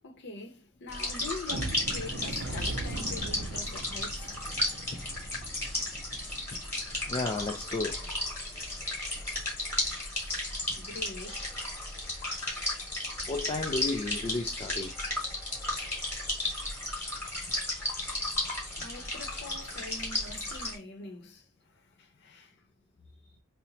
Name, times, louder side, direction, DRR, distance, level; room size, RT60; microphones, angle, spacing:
voice 1, 0.0-4.3 10.7-11.5 18.8-22.6, left 2 dB, 50° left, 0.8 m, -44 dB
sound 1, 0.9-20.8, left 1 dB, 10° left, 1.1 m, -34 dB
sound 2, 1.5-8.2 8.6-8.7 9.1-9.3 9.8-10.0, right 2 dB, 50° right, 0.6 m, -40 dB
voice 2, 7.1-8.0 13.2-15.0, left 2 dB, 25° left, 0.3 m, -33 dB
2.9 x 2.1 x 4.0 m
head